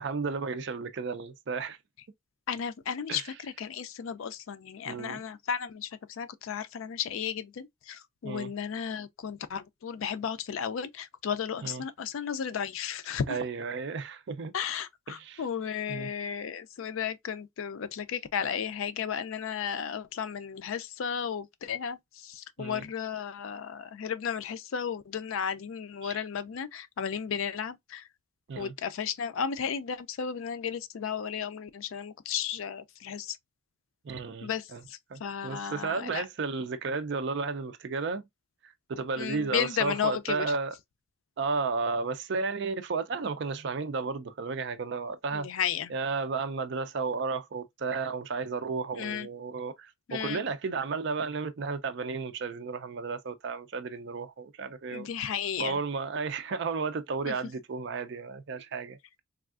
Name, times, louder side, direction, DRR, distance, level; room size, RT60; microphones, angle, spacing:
voice 1, 0.0-1.8 3.1-3.2 4.9-5.2 8.2-8.5 11.6-11.8 13.3-14.5 15.1-15.4 15.9-16.1 22.6-22.8 26.0-26.2 28.5-28.7 34.0-34.8 35.1-38.3 38.6-40.8 41.4-45.5 45.9-55.1 55.6-59.0, right 4 dB, 55° right, 0.4 m, -33 dB
voice 2, 2.5-13.4 14.5-28.1 28.5-33.4 34.4-36.3 39.2-40.5 45.3-45.9 48.9-49.3 50.1-50.4 54.9-55.8 57.3-57.4, left 7 dB, 70° left, 0.4 m, -34 dB
3.4 x 2.3 x 2.3 m
head